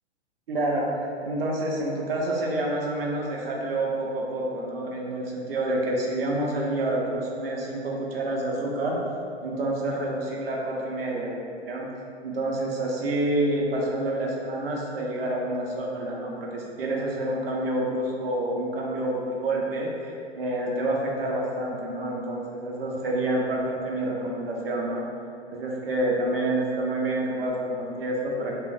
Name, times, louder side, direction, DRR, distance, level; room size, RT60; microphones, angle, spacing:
voice 1, 0.5-9.0 9.4-11.4 11.6-11.9 12.2-25.0 25.5-28.5, right 1 dB, 55° right, -2 dB, 0.7 m, -28 dB
2.4 x 2.1 x 3.8 m, 2.4 s
figure-of-eight pair, 110°, 34 cm